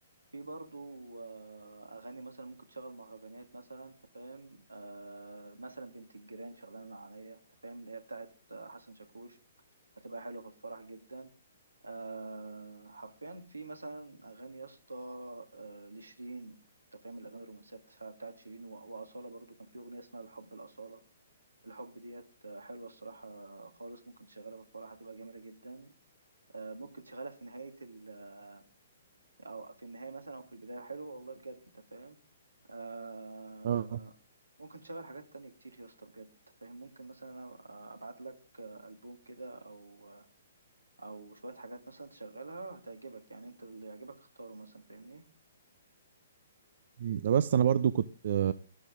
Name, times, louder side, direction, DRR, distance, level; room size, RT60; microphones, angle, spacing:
voice 1, 0.3-9.4 10.0-11.3 11.8-16.5 16.9-21.0 21.6-25.9 26.5-28.7 29.4-32.2 32.7-34.1 34.6-36.3 36.6-40.3 41.0-45.2, right 3 dB, 80° right, 6 dB, 2.3 m, -46 dB
voice 2, 33.6-34.0 47.0-48.5, right 9 dB, 50° right, 15 dB, 0.6 m, -27 dB
13.0 x 11.5 x 3.7 m, 0.34 s
figure-of-eight pair, 125°, 0 cm